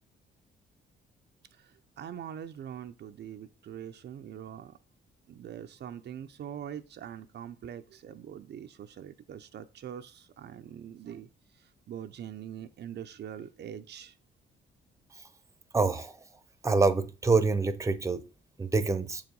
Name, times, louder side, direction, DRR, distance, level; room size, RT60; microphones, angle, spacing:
voice 1, 1.6-4.8 5.3-11.3 11.9-14.1, right 9 dB, 60° right, 0.7 m, -43 dB
voice 2, 15.7-16.1 16.6-18.2 18.6-19.2, right 4 dB, 15° right, 0.8 m, -26 dB
7.3 x 4.8 x 5.3 m
cardioid pair, 90°, 20 cm